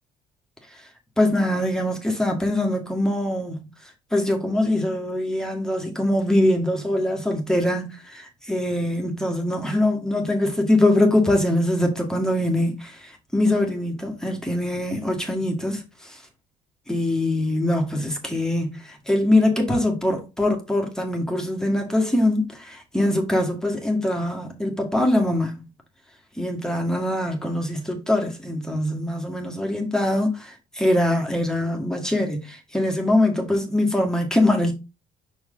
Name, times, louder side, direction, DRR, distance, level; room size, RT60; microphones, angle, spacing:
voice 1, 1.2-3.6 4.1-16.2 16.9-25.7 26.4-34.7, left 1 dB, 5° left, 1.8 m, -23 dB
6.2 x 4.6 x 3.8 m
cardioid pair, 110°, 17 cm